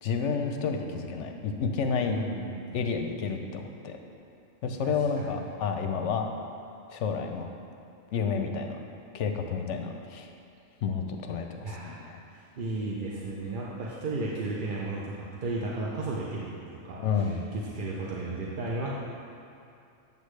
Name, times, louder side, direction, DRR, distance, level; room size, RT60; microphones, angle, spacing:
voice 1, 0.0-2.2 2.7-4.0 4.6-6.3 6.9-7.5 8.1-8.8 9.1-10.3 10.8-12.2 17.0-17.5, left 5 dB, 65° left, 4 dB, 0.9 m, -30 dB
voice 2, 2.1-2.7 4.8-5.4 11.6-16.5 16.8-18.9, right 2 dB, 50° right, -4 dB, 0.7 m, -34 dB
8.3 x 7.0 x 3.2 m, 2.5 s
omnidirectional pair, 1.4 m